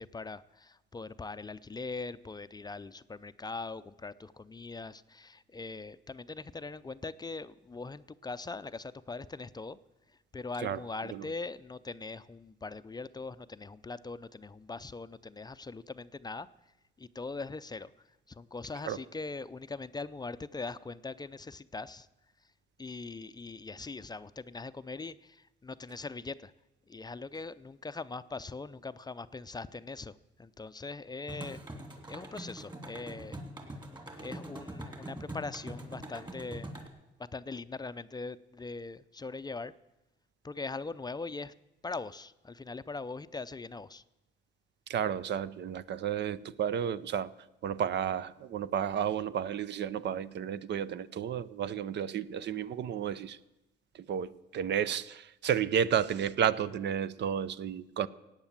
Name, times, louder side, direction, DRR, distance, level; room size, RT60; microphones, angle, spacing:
voice 1, 0.0-9.8 10.3-16.5 17.0-17.9 18.3-22.1 22.8-26.5 26.9-31.6 32.1-33.4 34.2-36.7 37.2-39.7 40.4-41.5 41.8-44.0, left 3 dB, 20° left, 0.5 m, -41 dB
sound 1, 31.3-36.9, right 1 dB, 20° right, 2.9 m, -43 dB
voice 2, 44.9-47.3 47.6-53.4 53.9-58.1, right 8 dB, 60° right, 0.6 m, -32 dB
17.0 x 9.0 x 7.4 m
cardioid pair, 90°, 20 cm